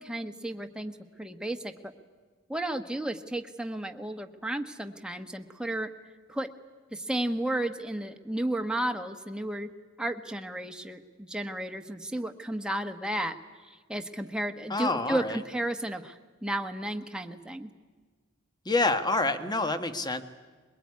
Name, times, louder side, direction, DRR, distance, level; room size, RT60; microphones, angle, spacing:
voice 1, 0.0-1.9 2.5-5.9 6.3-6.5 6.9-9.7 10.0-13.4 13.9-17.7, right 1 dB, 5° right, 5 dB, 1.3 m, -33 dB
voice 2, 14.7-15.4 18.6-20.2, left 2 dB, 20° left, 9 dB, 1.4 m, -27 dB
22.5 x 22.0 x 9.7 m, 1.5 s
head